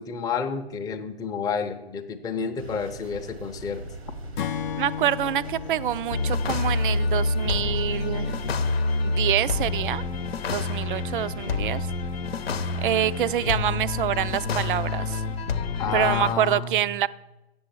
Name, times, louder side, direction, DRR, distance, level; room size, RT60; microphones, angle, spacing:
voice 1, 0.0-3.8 15.8-16.8, left 6 dB, 10° left, 5 dB, 0.6 m, -29 dB
sound 1, 2.6-15.5, right 1 dB, 90° right, 1.2 m, -41 dB
Acoustic guitar / Strum, 4.4-7.8, left 9 dB, 50° left, 0.6 m, -35 dB
voice 2, 4.8-8.4 9.0-10.0 10.5-11.9 12.8-15.2 15.9-17.1, right 11 dB, 55° right, 17 dB, 0.5 m, -26 dB
sound 2, 6.1-16.3, left 3 dB, 75° left, 0.8 m, -27 dB
8.1 x 7.0 x 7.9 m, 1.0 s
figure-of-eight pair, 115°, 31 cm